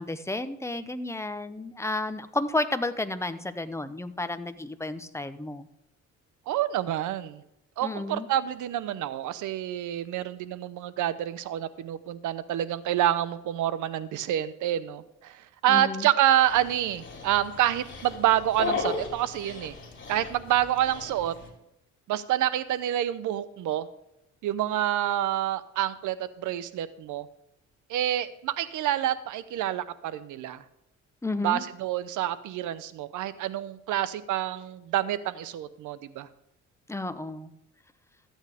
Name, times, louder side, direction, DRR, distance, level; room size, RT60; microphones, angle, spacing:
voice 1, 0.0-5.7 7.8-8.3 15.7-16.1 31.2-31.6 36.9-37.5, left 2 dB, 10° left, 11 dB, 0.8 m, -32 dB
voice 2, 6.5-7.4 7.8-19.7 20.1-21.3 22.1-23.9 24.4-27.3 27.9-30.6 31.4-36.3, right 12 dB, 80° right, 14 dB, 0.8 m, -28 dB
Dog, 16.5-21.5, left 4 dB, 40° left, 2.9 m, -36 dB
13.5 x 9.0 x 3.5 m, 0.82 s
cardioid pair, 90°, 30 cm